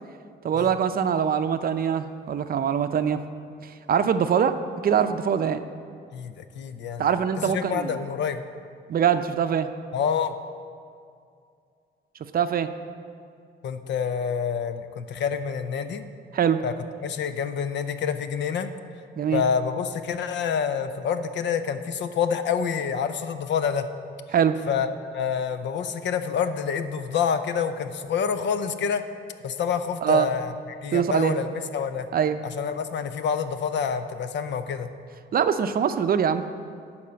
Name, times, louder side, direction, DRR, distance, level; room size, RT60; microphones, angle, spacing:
voice 1, 0.4-3.2 3.6-4.6 4.8-5.6 7.0-8.0 8.9-9.7 12.3-12.7 16.3-16.6 19.2-19.4 24.3-24.6 30.0-30.3 30.9-31.4 32.1-32.4 35.3-36.5, right 8 dB, 50° right, 10 dB, 0.5 m, -23 dB
voice 2, 6.1-7.1 7.4-8.4 9.9-10.3 13.6-16.0 16.6-16.7 17.0-18.7 19.3-23.9 24.7-29.0 29.4-30.5 30.8-32.1 32.4-34.9, left 7 dB, 65° left, 10 dB, 0.6 m, -27 dB
11.0 x 4.3 x 7.5 m, 2.3 s
cardioid pair, 90°, 20 cm